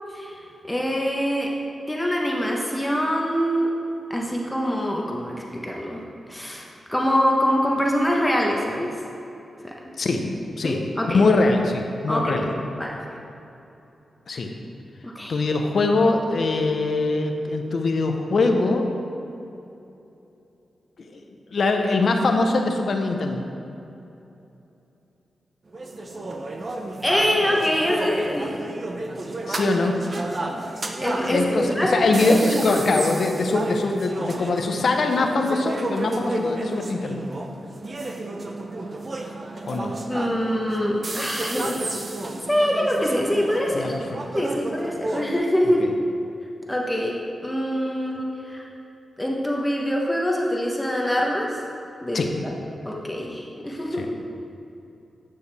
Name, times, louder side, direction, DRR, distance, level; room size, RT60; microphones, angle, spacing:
voice 1, 0.7-1.5 1.9-3.7 4.1-6.0 6.3-8.9 9.6-9.7 10.6-11.3 12.1-12.4 12.8-13.0 15.0-15.4 27.0-28.5 31.0-31.9 32.3-33.0 40.1-41.8 42.5-43.9 44.3-45.8 46.7-48.7 49.2-51.5 52.0-52.5 52.8-54.0, equal, 10° left, -2 dB, 1.0 m, -24 dB
voice 2, 11.1-12.4 14.3-14.5 15.3-18.9 21.0-21.2 21.5-23.4 29.5-30.0 31.3-37.3 39.7-39.9 43.7-44.0 45.8-45.9 52.1-52.3 54.0-54.1, left 3 dB, 65° left, 4 dB, 0.8 m, -22 dB
sound 1, 25.7-45.4, right 2 dB, 45° right, 0.7 m, -32 dB
9.5 x 6.4 x 3.4 m, 2.8 s
cardioid pair, 65°, 0 cm